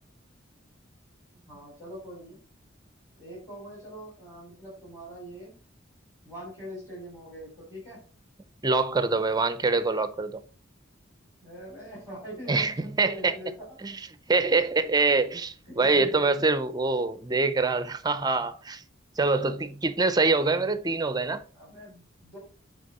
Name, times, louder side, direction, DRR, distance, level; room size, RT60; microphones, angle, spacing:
voice 1, 1.5-2.4 3.2-5.5 6.2-8.0 11.4-13.7 14.8-14.9 15.7-16.4 19.4-19.6 21.5-22.4, equal, 15° left, 3.6 m, -43 dB
voice 2, 8.6-10.4 12.5-13.4 13.8-14.0 14.3-18.8 19.2-21.4, right 3 dB, 20° right, 0.6 m, -25 dB
8.9 x 3.5 x 4.2 m
head